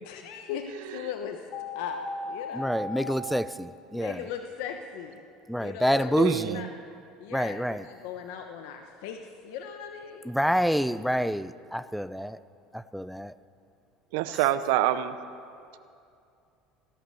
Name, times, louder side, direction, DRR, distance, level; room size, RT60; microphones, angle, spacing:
voice 1, 0.0-2.8 3.9-5.2 5.6-6.7 7.2-10.3, left 7 dB, 80° left, 5 dB, 0.9 m, -39 dB
sound 1, 1.5-3.1, left 3 dB, 55° left, 1.7 m, -36 dB
voice 2, 2.5-4.2 5.5-6.6 7.3-7.9 10.3-12.4 12.7-13.3 14.3-14.5, equal, ahead, 15 dB, 0.4 m, -27 dB
voice 3, 6.2-6.7 14.1-15.1, right 13 dB, 80° right, 13 dB, 0.6 m, -26 dB
16.0 x 11.5 x 6.9 m, 2.5 s
supercardioid pair, 115°, 0 cm